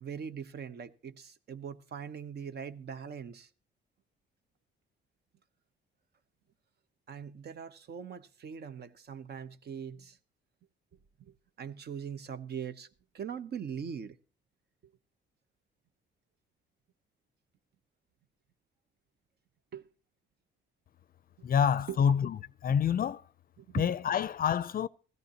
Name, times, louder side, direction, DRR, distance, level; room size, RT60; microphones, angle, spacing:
voice 1, 0.0-3.5 7.1-10.2 11.3-12.9 13.1-14.2 19.7-19.9 21.9-22.0 23.6-23.9, right 7 dB, 55° right, 0.9 m, -41 dB
voice 2, 21.4-23.2 23.7-24.9, left 8 dB, 45° left, 0.5 m, -27 dB
16.0 x 14.0 x 2.9 m
cardioid pair, 90°, 20 cm